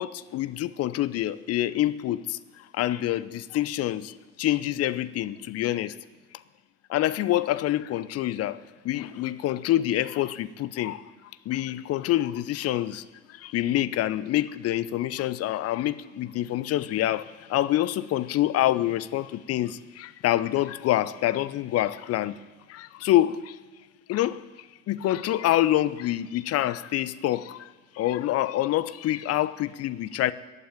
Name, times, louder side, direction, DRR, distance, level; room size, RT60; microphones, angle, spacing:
voice 1, 0.0-2.4 2.7-6.0 6.9-11.0 11.5-22.4 22.7-23.6 24.1-24.4 24.9-27.7 27.9-30.3, left 14 dB, 40° left, 0.7 m, -26 dB
14.5 x 8.8 x 8.8 m
figure-of-eight pair, 60°, 38 cm